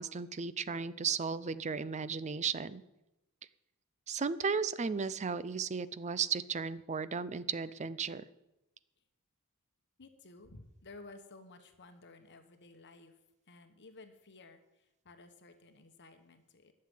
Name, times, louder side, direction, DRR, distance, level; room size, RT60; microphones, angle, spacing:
voice 1, 0.0-2.8 4.1-8.2, right 5 dB, 30° right, 16 dB, 0.5 m, -35 dB
voice 2, 10.0-13.2 13.5-16.7, left 3 dB, 50° left, 7 dB, 1.1 m, -55 dB
11.5 x 6.6 x 9.3 m, 0.93 s
head